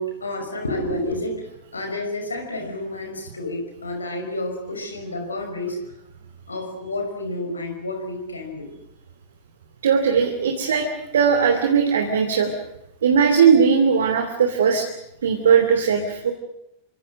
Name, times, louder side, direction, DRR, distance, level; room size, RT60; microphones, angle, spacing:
voice 1, 0.0-5.8 6.5-8.7 11.0-11.1, left 1 dB, 75° left, 5 dB, 5.7 m, -30 dB
voice 2, 9.8-10.9 11.1-12.5 13.0-14.8 15.2-16.3, right 6 dB, 65° right, 3 dB, 2.9 m, -18 dB
27.5 x 24.5 x 6.5 m, 0.82 s
figure-of-eight pair, 90°, 0 cm